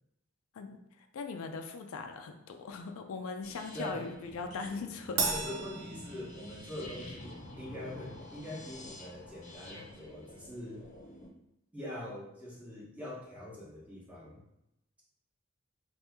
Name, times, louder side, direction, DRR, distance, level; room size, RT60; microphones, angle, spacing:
voice 1, 1.1-5.3, left 4 dB, 85° left, 6 dB, 0.4 m, -40 dB
sound 1, 3.4-11.3, left 1 dB, 35° left, 0.6 m, -48 dB
voice 2, 3.7-4.1 5.3-10.9 11.7-14.4, left 1 dB, 5° right, -6 dB, 0.9 m, -43 dB
Crash cymbal, 5.2-6.8, right 4 dB, 75° right, 0.6 m, -35 dB
2.7 x 2.6 x 3.4 m, 0.84 s
head